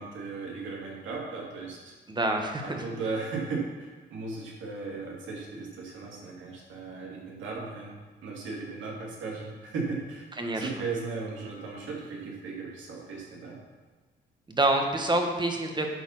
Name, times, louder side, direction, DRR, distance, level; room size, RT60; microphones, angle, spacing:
voice 1, 0.0-1.9 2.6-13.6, right 4 dB, 75° right, -2 dB, 2.4 m, -36 dB
voice 2, 2.1-2.6 10.4-10.7 14.5-15.9, right 2 dB, 20° right, 3 dB, 1.3 m, -26 dB
11.0 x 4.3 x 5.6 m, 1.3 s
cardioid pair, 90°, 20 cm